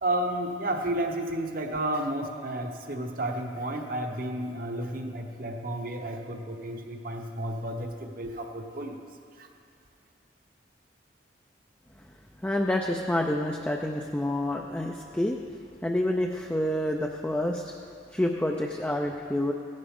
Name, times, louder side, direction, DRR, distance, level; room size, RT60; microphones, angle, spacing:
voice 1, 0.0-9.0 9.4-9.5, right 1 dB, 50° right, 3 dB, 1.0 m, -32 dB
voice 2, 12.4-17.7 18.1-19.5, left 1 dB, 10° left, 1 dB, 0.4 m, -28 dB
16.5 x 11.5 x 3.7 m, 2.3 s
head